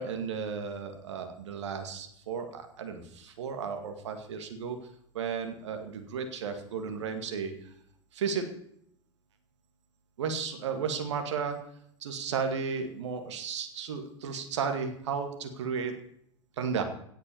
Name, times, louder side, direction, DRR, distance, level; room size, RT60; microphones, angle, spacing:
voice 1, 0.0-4.8 5.1-7.5 8.1-8.5 10.2-11.6 12.0-15.9 16.6-16.8, right 6 dB, 75° right, 6 dB, 2.3 m, -34 dB
17.5 x 6.5 x 7.1 m, 0.71 s
hypercardioid pair, 85°, 15 cm